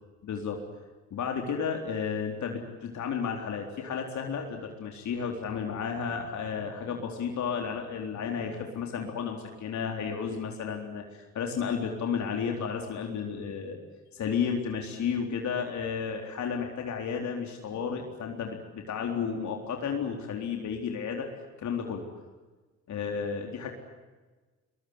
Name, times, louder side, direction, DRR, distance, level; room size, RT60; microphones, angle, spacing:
voice 1, 0.2-0.6 1.1-13.8 14.1-21.3 21.6-22.0 22.9-23.7, left 6 dB, 70° left, 2 dB, 4.0 m, -32 dB
23.0 x 23.0 x 9.7 m, 1.3 s
cardioid pair, 90°, 30 cm